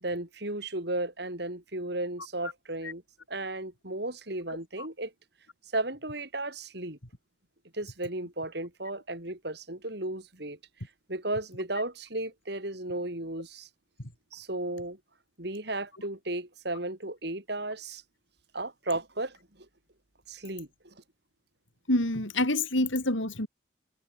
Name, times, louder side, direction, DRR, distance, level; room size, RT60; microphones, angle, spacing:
voice 1, 0.0-3.0 3.3-5.1 5.7-7.0 7.7-10.6 11.1-13.7 14.3-15.0 15.4-18.0 18.5-19.7 20.3-21.0, right 2 dB, 55° right, 4.1 m, -34 dB
voice 2, 21.9-23.5, left 1 dB, 80° left, 6.4 m, -27 dB
head